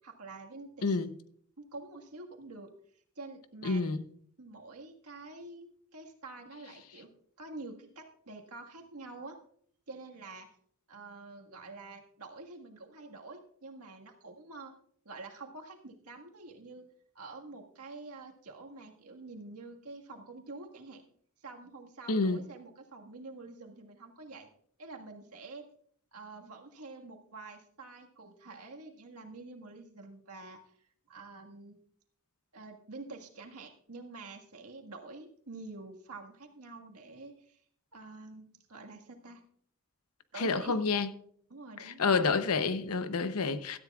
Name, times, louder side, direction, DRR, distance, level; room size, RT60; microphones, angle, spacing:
voice 1, 0.0-1.0 1.6-2.7 3.1-3.8 4.4-7.1 7.4-9.4 9.9-10.5 10.9-14.7 15.0-16.8 17.1-21.0 21.4-24.5 24.8-25.6 26.1-30.7 31.1-31.8 32.5-37.6 37.9-39.5 40.3-40.7 41.5-42.2, right 3 dB, 90° right, 1.7 m, -47 dB
voice 2, 3.6-4.0 22.1-22.4 40.4-41.1 41.8-43.8, left 4 dB, 80° left, 0.8 m, -29 dB
17.0 x 12.5 x 2.4 m
head